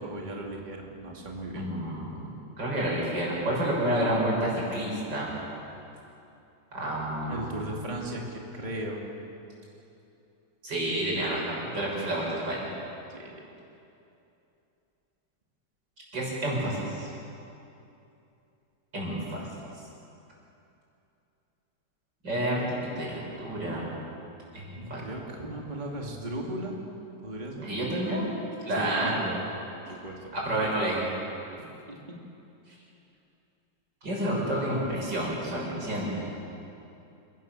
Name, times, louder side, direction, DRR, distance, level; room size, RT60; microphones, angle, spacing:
voice 1, 0.0-1.6 7.3-9.1 13.1-13.5 24.7-26.7 27.2-27.7 28.7-29.2 29.9-30.3 31.9-32.0, right 1 dB, 25° right, -1 dB, 2.6 m, -36 dB
voice 2, 1.5-2.2 2.6-5.3 6.7-7.6 10.6-12.7 16.1-17.1 18.9-19.5 22.2-23.9 24.5-25.0 27.6-28.3 28.6-29.5 30.3-31.1 34.0-36.1, right 1 dB, 80° right, -4 dB, 7.1 m, -29 dB
29.0 x 17.5 x 7.4 m, 2.8 s
omnidirectional pair, 1.9 m